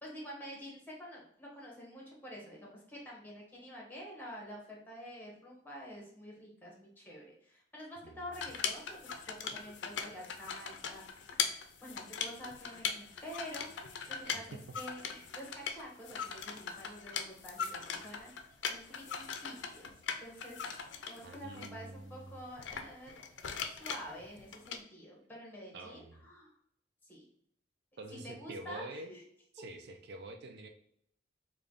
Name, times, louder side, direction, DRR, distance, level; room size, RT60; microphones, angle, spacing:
voice 1, 0.0-11.3 11.8-13.7 14.1-18.3 18.7-19.9 20.2-20.7 21.1-23.1 23.7-26.5 27.0-27.3 28.2-29.2, equal, 10° left, -2 dB, 1.1 m, -48 dB
sound 1, 8.3-21.7 22.6-24.8, left 6 dB, 70° left, 0.4 m, -40 dB
voice 2, 21.2-22.3 25.7-26.2 28.0-29.1 29.5-30.7, right 2 dB, 60° right, 6 dB, 0.4 m, -47 dB
3.4 x 2.3 x 3.7 m, 0.68 s
head